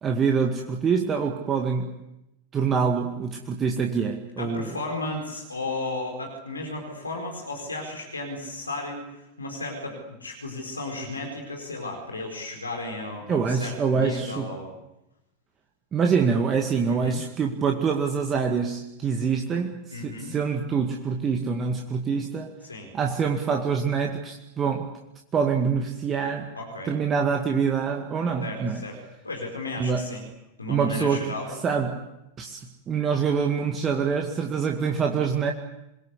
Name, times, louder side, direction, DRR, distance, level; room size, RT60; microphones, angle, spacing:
voice 1, 0.0-1.9 2.5-4.7 13.3-14.5 15.9-22.5 22.9-25.0 25.3-26.5 26.9-28.8 29.8-30.1 30.7-31.3 31.6-32.0 32.4-35.5, right 6 dB, 25° right, 3 dB, 2.1 m, -25 dB
voice 2, 4.4-14.7 16.9-17.2 19.9-20.3 22.7-22.9 26.6-27.0 28.4-29.0 29.2-30.2 30.6-31.5, left 2 dB, 80° left, 2 dB, 4.5 m, -34 dB
28.0 x 22.0 x 8.3 m, 0.88 s
figure-of-eight pair, 90°, 0 cm